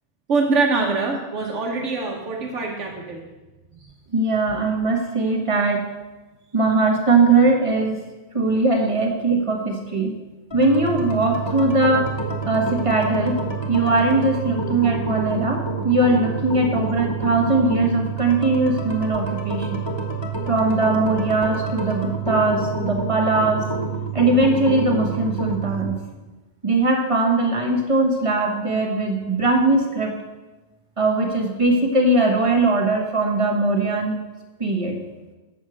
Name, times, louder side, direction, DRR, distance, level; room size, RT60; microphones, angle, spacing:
voice 1, 0.3-3.3 3.8-3.9, right 3 dB, 85° right, -1 dB, 1.4 m, -24 dB
voice 2, 4.1-5.8 6.5-8.0 8.3-10.2 10.5-12.1 12.4-13.4 13.7-19.8 20.5-23.6 24.1-26.0 26.6-30.1 31.0-34.2 34.6-35.0, right 2 dB, 30° right, 1 dB, 1.4 m, -20 dB
sound 1, 10.5-25.9, right 4 dB, 25° left, 1.3 m, -28 dB
8.4 x 6.3 x 6.2 m, 1.1 s
omnidirectional pair, 1.2 m